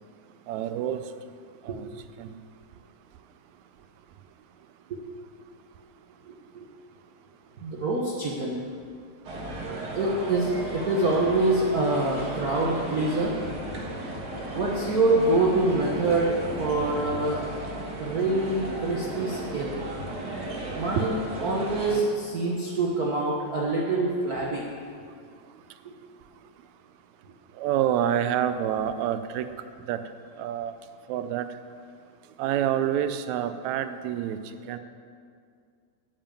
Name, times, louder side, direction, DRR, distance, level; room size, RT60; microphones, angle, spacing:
voice 1, 0.5-1.1 1.6-1.9 2.2-2.4 21.0-21.1 27.5-29.5 29.9-30.0 30.4-30.7 31.1-31.6 32.4-34.8, right 10 dB, 80° right, 10 dB, 1.9 m, -27 dB
voice 2, 7.6-8.6 9.9-13.3 14.5-17.4 18.0-19.8 20.7-24.6, right 2 dB, 60° right, -3 dB, 0.9 m, -25 dB
sound 1, 9.2-22.0, right 1 dB, 45° right, 1.6 m, -35 dB
10.5 x 7.2 x 8.9 m, 2.2 s
omnidirectional pair, 3.4 m